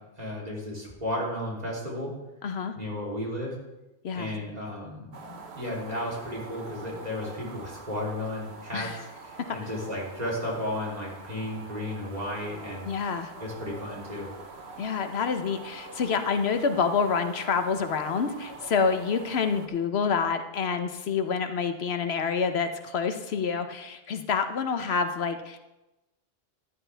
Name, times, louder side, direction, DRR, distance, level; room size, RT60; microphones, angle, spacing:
voice 1, 0.0-2.1 2.7-3.6 4.1-12.9 13.4-14.3, left 1 dB, 40° right, -4 dB, 3.4 m, -34 dB
voice 2, 2.4-2.7 4.0-4.3 8.7-9.0 12.8-13.3 14.8-25.6, left 5 dB, 80° left, 8 dB, 1.1 m, -27 dB
sound 1, 5.1-19.7, right 3 dB, 85° right, 1.4 m, -45 dB
14.5 x 10.5 x 3.4 m, 0.98 s
omnidirectional pair, 1.1 m